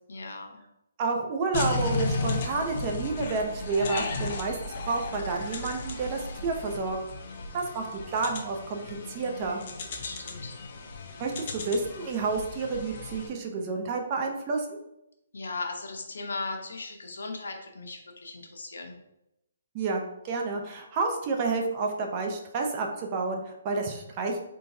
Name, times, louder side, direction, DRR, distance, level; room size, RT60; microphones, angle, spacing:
voice 1, 0.1-0.6 9.9-10.6 15.3-18.9, left 3 dB, 85° left, 3 dB, 0.9 m, -37 dB
voice 2, 1.0-7.0 7.5-9.6 11.2-14.8 19.7-24.4, right 3 dB, 30° right, 2 dB, 0.6 m, -30 dB
sound 1, 1.5-13.3, left 3 dB, 45° left, 0.7 m, -35 dB
4.0 x 3.8 x 2.7 m, 0.85 s
hypercardioid pair, 160°, 0 cm